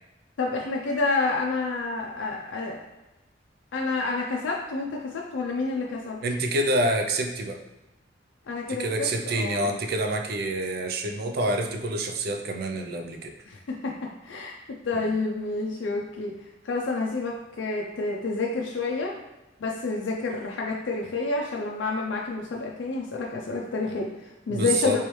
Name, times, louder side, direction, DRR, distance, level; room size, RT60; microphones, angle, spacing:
voice 1, 0.4-2.8 3.7-6.2 8.5-9.7 13.5-14.6 14.8-16.3 16.6-19.1 19.6-25.0, left 3 dB, 85° left, -1 dB, 0.4 m, -29 dB
voice 2, 6.2-7.6 8.7-13.3 14.9-15.0 24.5-25.0, right 1 dB, 55° right, 5 dB, 0.4 m, -27 dB
3.0 x 3.0 x 3.1 m, 1.0 s
head